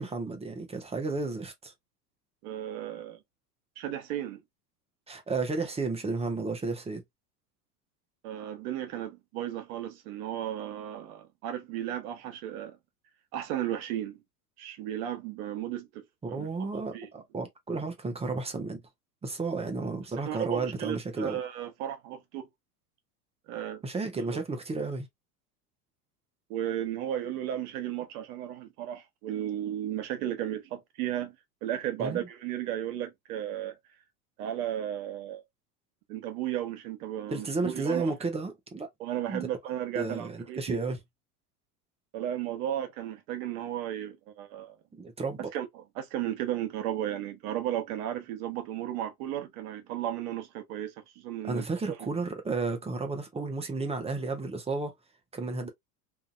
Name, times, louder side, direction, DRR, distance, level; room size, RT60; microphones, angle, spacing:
voice 1, 0.0-1.7 5.1-7.0 16.2-18.8 19.2-21.4 23.8-25.1 32.0-32.3 37.3-38.9 39.3-39.5 40.0-41.0 44.9-45.5 51.4-54.9 55.3-55.7, right 3 dB, 15° right, 0.6 m, -32 dB
voice 2, 2.4-3.2 3.8-4.4 8.2-12.8 13.3-14.2 14.6-17.1 20.2-22.5 23.5-23.8 24.3-24.4 26.5-31.4 31.6-33.8 34.4-35.4 36.1-38.1 39.0-40.8 42.1-44.7 45.5-52.0, right 11 dB, 65° right, 1.0 m, -34 dB
2.8 x 2.5 x 2.4 m
hypercardioid pair, 90°, 47 cm